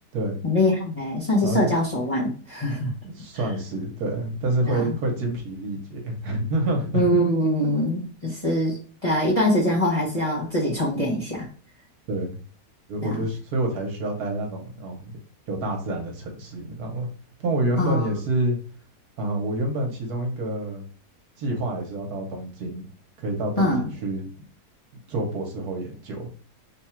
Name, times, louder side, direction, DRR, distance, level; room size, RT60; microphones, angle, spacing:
voice 1, 0.4-2.9 4.7-4.9 6.9-11.5 13.0-13.2 17.8-18.1 23.6-23.9, left 1 dB, 30° left, -5 dB, 0.8 m, -23 dB
voice 2, 3.0-7.0 12.1-12.4 12.9-15.1 15.5-17.1 17.4-18.6 19.2-20.8 21.4-22.8 23.2-24.3 25.1-26.3, right 1 dB, 70° right, 2 dB, 1.4 m, -27 dB
3.5 x 2.3 x 4.2 m, 0.40 s
omnidirectional pair, 1.8 m